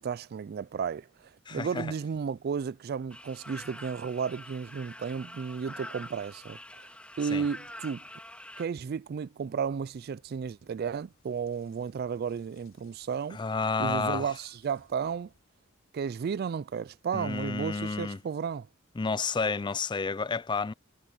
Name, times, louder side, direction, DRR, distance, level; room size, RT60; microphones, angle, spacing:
voice 1, 0.0-6.9 7.2-8.0 8.6-13.4 13.8-15.3 15.9-18.7, right 6 dB, 50° right, 0.3 m, -33 dB
voice 2, 1.5-1.9 7.3-7.4 13.3-14.3 17.1-18.2 19.0-20.7, left 4 dB, 20° left, 0.4 m, -30 dB
sound 1, 3.1-8.7, left 1 dB, 5° left, 2.9 m, -46 dB
sound 2, 9.6-15.4, left 3 dB, 65° left, 4.0 m, -67 dB
head